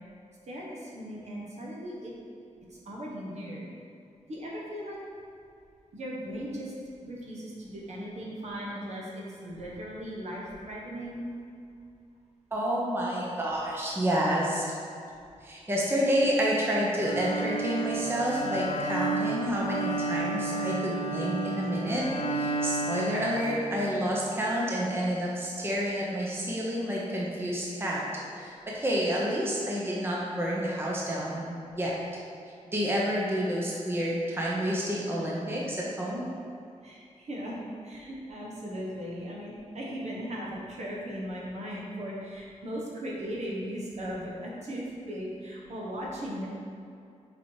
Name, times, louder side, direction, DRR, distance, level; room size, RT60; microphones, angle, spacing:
voice 1, 0.5-2.1 2.8-3.7 4.3-5.0 5.9-6.7 7.0-11.2 36.8-46.5, equal, 60° right, -4 dB, 1.5 m, -38 dB
voice 2, 12.5-14.7 15.4-22.0 22.3-28.0 28.4-31.9 32.7-36.2, equal, 20° right, -4 dB, 0.8 m, -29 dB
Bowed string instrument, 17.0-24.2, right 3 dB, 60° left, 0.9 m, -32 dB
6.8 x 4.6 x 4.8 m, 2.5 s
wide cardioid pair, 160°, 13 cm